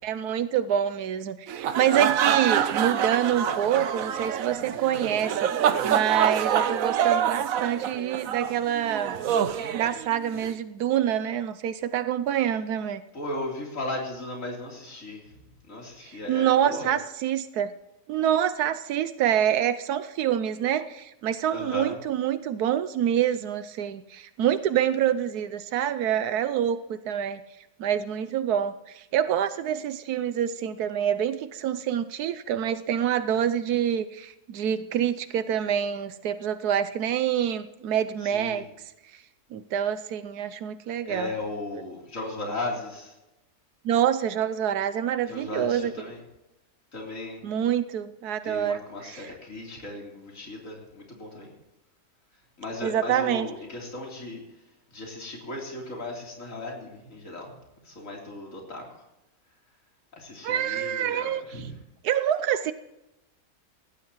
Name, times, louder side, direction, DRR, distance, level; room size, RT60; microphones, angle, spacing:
voice 1, 0.0-5.5 5.8-9.2 9.7-13.0 16.1-17.7 18.1-27.4 27.8-38.7 39.5-41.3 43.8-45.9 47.4-49.2 52.8-53.5 60.4-61.4 62.0-62.7, right 9 dB, 85° right, 11 dB, 1.2 m, -26 dB
sound 1, 1.5-10.5, right 9 dB, 65° right, 1.1 m, -26 dB
voice 2, 13.1-15.4 15.7-16.9 21.5-22.0 38.2-38.7 41.1-43.2 45.3-46.2 46.9-47.4 48.4-51.5 52.6-54.4 54.9-57.6 57.8-59.0 60.1-61.8, left 2 dB, 55° left, -2 dB, 3.9 m, -36 dB
19.5 x 15.0 x 3.1 m, 0.93 s
omnidirectional pair, 1.6 m